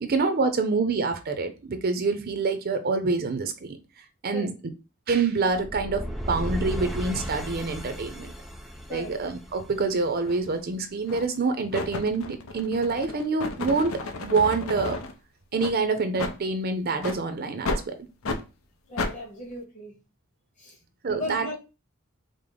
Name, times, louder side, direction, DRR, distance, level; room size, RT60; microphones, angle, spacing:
voice 1, 0.0-3.8 4.2-4.5 5.1-8.3 8.9-15.0 15.5-17.9 21.0-21.5, right 4 dB, 50° right, 0.5 m, -26 dB
sound 1, 5.4-10.5, equal, ahead, 0.5 m, -35 dB
sound 2, 10.2-10.4 11.1-11.4 11.7-15.1 15.6-15.7 16.2-16.4 17.0-17.2 17.6-17.8 18.2-18.4 19.0-19.1, left 3 dB, 80° left, 0.6 m, -32 dB
voice 2, 18.8-20.0 20.6-20.8 21.0-21.6, left 1 dB, 35° left, 1.5 m, -37 dB
5.1 x 2.0 x 3.6 m
head